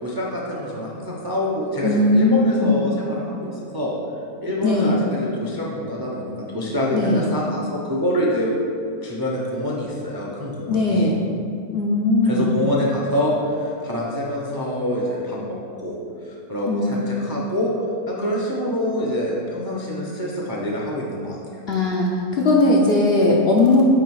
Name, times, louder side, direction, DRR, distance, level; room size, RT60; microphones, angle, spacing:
voice 1, 0.0-3.5 3.7-3.9 4.4-8.5 9.0-11.1 12.2-16.0 16.2-17.7 18.1-21.4, equal, 25° right, -3 dB, 0.5 m, -26 dB
voice 2, 1.8-2.8 4.6-4.9 6.9-7.2 10.7-11.2 11.7-12.5 16.7-17.0 21.7-23.8, left 2 dB, 55° left, -2 dB, 0.7 m, -18 dB
8.9 x 3.0 x 4.7 m, 2.5 s
omnidirectional pair, 1.6 m